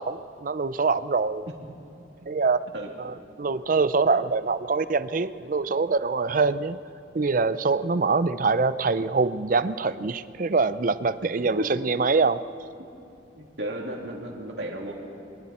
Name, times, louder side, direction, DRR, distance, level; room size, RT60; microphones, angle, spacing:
voice 1, 0.0-1.5 2.3-2.7 3.0-6.8 7.1-12.4, right 4 dB, 45° right, 14 dB, 0.5 m, -24 dB
voice 2, 13.4-14.9, equal, 65° right, 0 dB, 2.8 m, -33 dB
29.0 x 23.0 x 4.3 m, 2.7 s
head